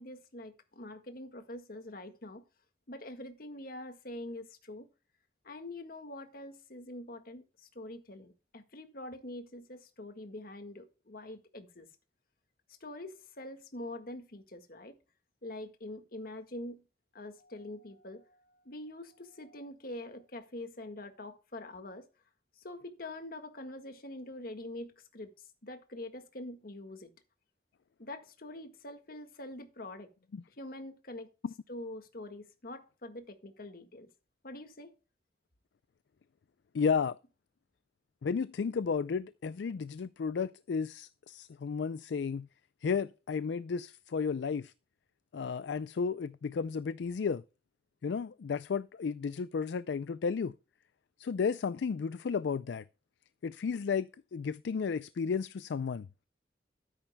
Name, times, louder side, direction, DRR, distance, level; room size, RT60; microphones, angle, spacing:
voice 1, 0.0-2.4 2.9-4.9 5.4-11.9 12.8-15.0 15.4-16.8 17.1-22.1 22.6-27.1 28.0-30.1 30.6-31.3 31.7-34.1 34.4-34.9, left 1 dB, 50° left, 1.7 m, -45 dB
voice 2, 36.7-37.2 38.2-42.5 42.8-44.7 45.3-47.4 48.0-50.5 51.2-52.8 53.4-56.1, left 5 dB, 70° left, 0.4 m, -33 dB
13.0 x 10.0 x 2.2 m
head